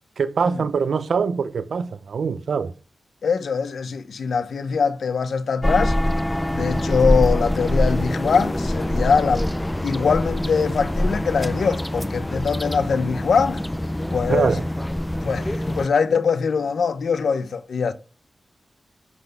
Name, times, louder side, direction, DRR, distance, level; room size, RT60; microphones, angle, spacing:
voice 1, 0.2-2.7 14.3-14.6, right 6 dB, 90° right, 0.6 m, -23 dB
voice 2, 3.2-6.0 6.5-9.5 9.8-13.6 14.1-14.6 15.2-17.9, left 5 dB, 90° left, 0.8 m, -22 dB
sound 1, 5.6-15.9, left 1 dB, 10° left, 0.4 m, -24 dB
10.5 x 4.0 x 6.7 m
wide cardioid pair, 175°, 0 cm